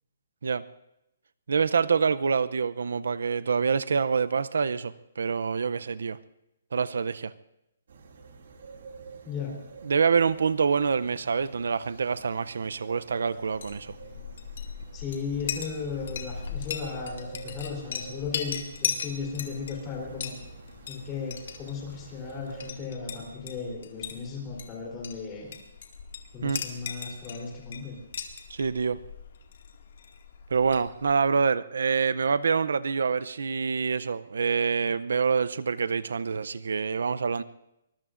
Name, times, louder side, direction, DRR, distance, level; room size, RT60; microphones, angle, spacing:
voice 1, 1.5-6.2 6.7-7.3 9.8-14.0 26.4-26.6 28.5-29.0 30.5-37.4, right 5 dB, 80° right, 16 dB, 0.5 m, -26 dB
sound 1, 7.9-22.7, right 5 dB, 60° right, 2.4 m, -49 dB
voice 2, 9.3-9.6 14.9-20.3 20.9-25.5 26.3-28.0, left 5 dB, 15° left, -1 dB, 3.5 m, -36 dB
Chink clink, 13.4-31.3, left 6 dB, 50° left, 2.0 m, -39 dB
24.5 x 21.0 x 2.5 m, 0.87 s
hypercardioid pair, 175°, 0 cm